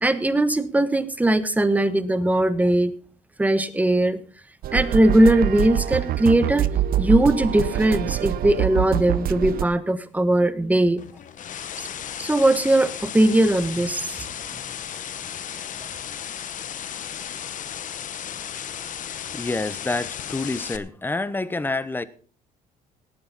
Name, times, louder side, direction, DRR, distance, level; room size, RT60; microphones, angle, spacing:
voice 1, 0.0-2.9 3.4-4.2 4.7-6.7 7.0-11.0 12.2-14.3, right 1 dB, 10° right, 12 dB, 1.2 m, -20 dB
sound 1, 4.6-9.7, right 12 dB, 60° right, 0.6 m, -25 dB
sound 2, 11.0-20.8, left 9 dB, 50° left, 1.0 m, -35 dB
voice 2, 19.3-22.0, left 2 dB, 10° left, 15 dB, 0.9 m, -28 dB
18.0 x 9.5 x 4.1 m, 0.42 s
cardioid pair, 110°, 17 cm